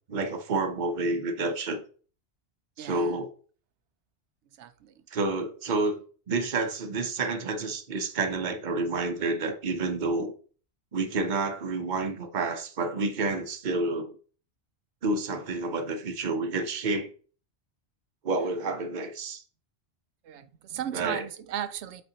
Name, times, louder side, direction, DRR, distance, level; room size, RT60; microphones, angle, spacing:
voice 1, 0.1-1.8 2.8-3.3 5.1-6.0 6.3-10.3 10.9-14.1 15.0-17.1 18.2-19.4 20.9-21.2, right 3 dB, 45° right, 0.9 m, -29 dB
voice 2, 2.8-3.2 4.6-5.0 20.2-22.0, right 10 dB, 85° right, 0.9 m, -36 dB
8.0 x 4.4 x 2.8 m
omnidirectional pair, 1.1 m